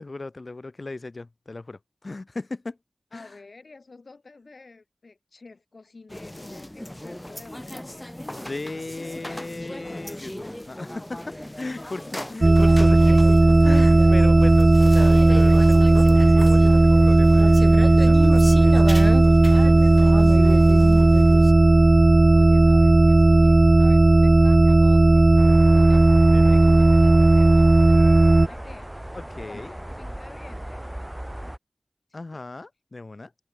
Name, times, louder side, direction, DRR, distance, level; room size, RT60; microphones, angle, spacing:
voice 1, 0.0-2.8 3.1-3.3 8.3-20.3 25.9-26.6 29.1-29.7 32.1-33.3, left 3 dB, 55° left, 3.0 m, -37 dB
voice 2, 3.1-8.3 8.7-9.4 11.7-12.1 22.3-25.5 25.7-26.0 26.4-28.9 29.5-30.9 32.1-32.5, left 3 dB, 75° left, 2.0 m, -48 dB
sound 1, 6.1-21.5, left 1 dB, 15° left, 1.5 m, -35 dB
sound 2, 12.4-28.5, right 2 dB, 45° right, 0.3 m, -15 dB
sound 3, 25.4-31.6, right 1 dB, 15° right, 0.9 m, -38 dB
wide cardioid pair, 60°, 0 cm